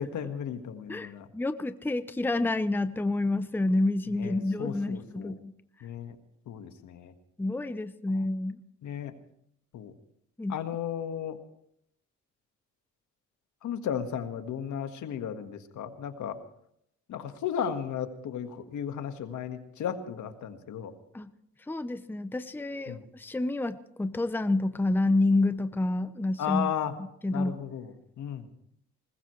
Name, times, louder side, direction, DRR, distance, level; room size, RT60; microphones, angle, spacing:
voice 1, 0.0-1.3 4.2-5.3 5.8-6.1 6.5-7.1 8.8-9.1 9.7-9.9 10.5-11.4 13.6-16.4 17.1-20.9 22.9-23.0 26.4-26.9 27.3-28.5, left 8 dB, 75° left, 8 dB, 1.7 m, -35 dB
voice 2, 0.9-5.5 7.4-8.6 10.4-10.6 21.1-21.3 21.7-26.7 27.2-27.6, left 2 dB, 5° left, 12 dB, 0.7 m, -28 dB
20.5 x 20.0 x 3.2 m, 0.72 s
cardioid pair, 90°, 30 cm